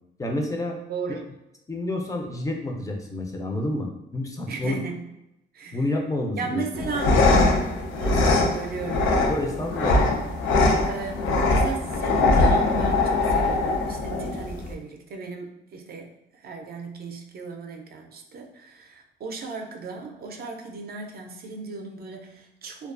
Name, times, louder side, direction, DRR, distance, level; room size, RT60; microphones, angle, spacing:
voice 1, 0.2-0.8 1.1-1.2 1.7-4.8 5.7-6.8 9.3-10.2, left 1 dB, 15° left, 2 dB, 0.4 m, -29 dB
voice 2, 0.9-1.3 4.5-5.1 5.5-5.9 6.3-7.2 8.0-9.1 10.8-22.9, right 4 dB, 50° right, 2 dB, 0.4 m, -36 dB
sound 1, 6.7-14.7, left 2 dB, 85° left, 0.4 m, -22 dB
2.3 x 2.2 x 2.4 m, 0.90 s
cardioid pair, 90°, 20 cm